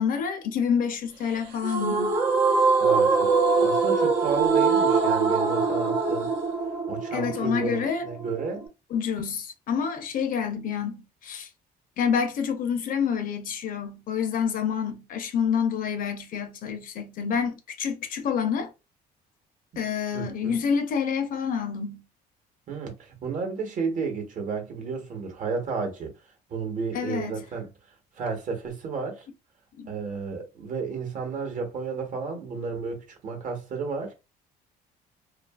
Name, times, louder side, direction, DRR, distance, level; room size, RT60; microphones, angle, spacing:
voice 1, 0.0-2.2 7.1-8.1 8.9-11.5 12.0-18.7 19.8-22.0 26.9-27.4 29.8-29.9, left 7 dB, 55° left, 0.6 m, -28 dB
sound 1, 1.6-8.7, right 4 dB, 75° right, 0.8 m, -23 dB
voice 2, 2.8-3.3 3.6-6.3 6.9-8.7 20.1-20.6 22.7-26.1 26.5-27.7 28.1-29.3 29.9-34.1, right 5 dB, 50° right, 1.0 m, -32 dB
2.7 x 2.4 x 2.3 m
cardioid pair, 110°, 17 cm